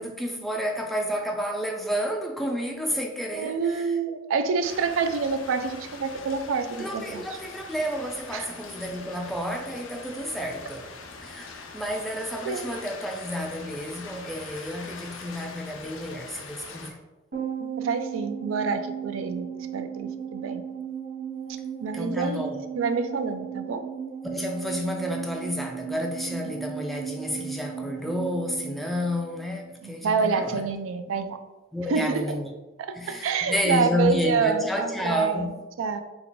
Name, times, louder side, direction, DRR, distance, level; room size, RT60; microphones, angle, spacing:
voice 1, 0.0-3.9 6.8-10.9 11.2-16.9 21.9-22.6 24.2-30.7 31.7-32.5 32.9-35.6, left 1 dB, ahead, 1 dB, 0.3 m, -30 dB
voice 2, 3.3-7.2 8.3-8.5 12.4-12.7 17.8-19.5 19.7-20.6 21.8-23.8 29.8-31.4 31.9-32.4 32.8-35.5 35.8-36.0, right 5 dB, 85° right, 8 dB, 0.3 m, -27 dB
sound 1, 4.6-16.9, left 4 dB, 80° left, 0.5 m, -43 dB
sound 2, 17.3-29.8 30.1-30.2, right 8 dB, 60° right, 1.5 m, -36 dB
3.5 x 2.2 x 3.7 m, 1.1 s
head